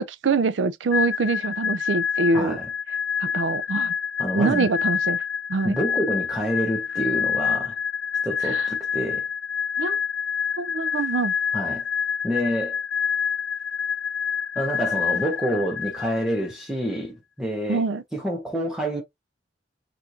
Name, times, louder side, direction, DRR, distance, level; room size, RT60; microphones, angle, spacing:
voice 1, 0.0-2.6 3.2-3.9 4.3-5.2 5.5-5.8 8.4-8.7 9.8-10.0 10.6-11.3 17.7-18.0, right 3 dB, 80° right, 0.4 m, -24 dB
sound 1, 0.9-16.5, left 7 dB, 90° left, 0.5 m, -27 dB
voice 2, 2.3-2.7 4.2-4.7 5.6-7.8 8.2-9.2 11.5-11.9 12.2-12.8 14.6-17.8 18.1-19.0, equal, 5° right, 0.8 m, -27 dB
4.4 x 2.5 x 2.6 m
head